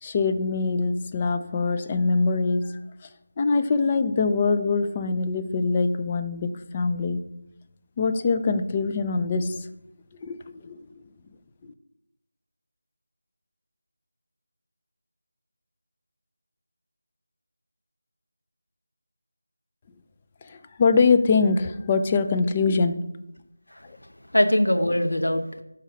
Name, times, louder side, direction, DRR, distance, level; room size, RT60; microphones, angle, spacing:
voice 1, 0.0-2.8 3.4-7.2 8.0-9.7 10.2-10.8 11.6-11.7 20.5-23.1, left 4 dB, 20° left, 8 dB, 0.4 m, -23 dB
voice 2, 23.7-25.6, left 1 dB, 85° left, 5 dB, 0.9 m, -23 dB
5.4 x 4.1 x 5.0 m, 0.85 s
figure-of-eight pair, 170°, 0 cm